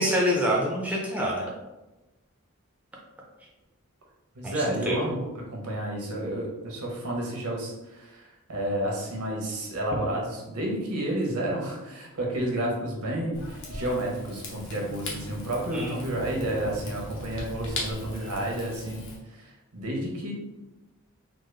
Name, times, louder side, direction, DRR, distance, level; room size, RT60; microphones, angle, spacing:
voice 1, 0.0-1.5 4.4-5.0 15.7-15.9, equal, 5° right, -2 dB, 0.4 m, -26 dB
voice 2, 4.3-19.0 19.3-19.5 19.7-20.3, right 1 dB, 85° right, -1 dB, 0.9 m, -31 dB
Rain / Fire, 13.3-19.2, left 2 dB, 55° left, 0.8 m, -38 dB
3.6 x 2.0 x 3.2 m, 1.0 s
head